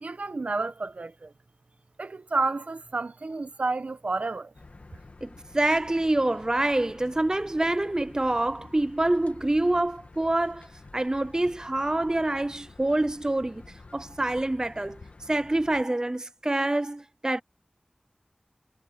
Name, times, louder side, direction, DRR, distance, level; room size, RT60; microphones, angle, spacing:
voice 1, 0.0-1.3 2.0-4.5, right 3 dB, 80° right, 1.1 m, -30 dB
sound 1, 4.5-15.8, left 3 dB, 80° left, 2.4 m, -50 dB
voice 2, 5.2-10.7 10.9-13.6 13.9-15.0 15.3-17.4, right 1 dB, 30° right, 0.5 m, -26 dB
wide cardioid pair, 55°, 2 cm